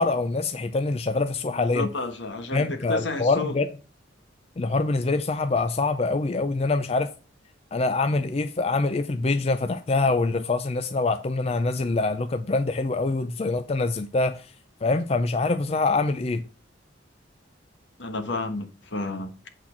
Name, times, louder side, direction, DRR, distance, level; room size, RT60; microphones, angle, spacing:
voice 1, 0.0-1.9 2.5-3.7 4.6-7.1 7.7-14.5 14.8-16.4, left 3 dB, 30° left, 0.4 m, -25 dB
voice 2, 1.5-3.5 18.0-19.5, left 3 dB, 70° left, 1.4 m, -31 dB
8.5 x 4.4 x 5.7 m
head